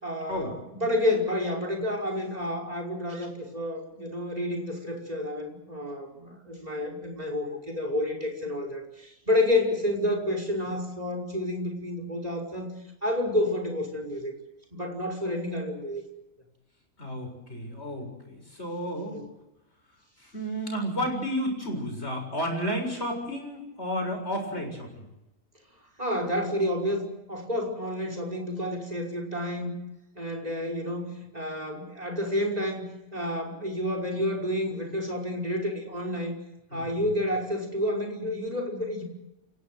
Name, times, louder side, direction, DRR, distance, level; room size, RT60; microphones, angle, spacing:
voice 1, 0.0-12.7 13.0-14.3 14.7-16.0 19.1-19.3 26.0-29.8 30.2-32.9 33.1-36.3 36.7-39.0, left 1 dB, 30° right, 4 dB, 5.8 m, -30 dB
voice 2, 17.0-19.2 20.2-25.1 36.7-36.9, equal, 55° left, 3 dB, 7.6 m, -32 dB
28.5 x 17.0 x 7.9 m, 0.95 s
omnidirectional pair, 1.3 m